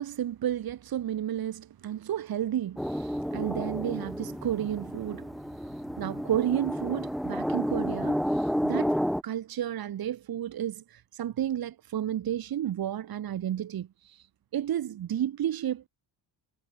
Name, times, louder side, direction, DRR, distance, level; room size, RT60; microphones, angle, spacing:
voice 1, 0.0-5.3 6.0-14.3 14.5-15.9, right 11 dB, 55° right, 2.7 m, -32 dB
sound 1, 2.8-9.2, equal, ahead, 1.0 m, -31 dB
cardioid pair, 175°, 44 cm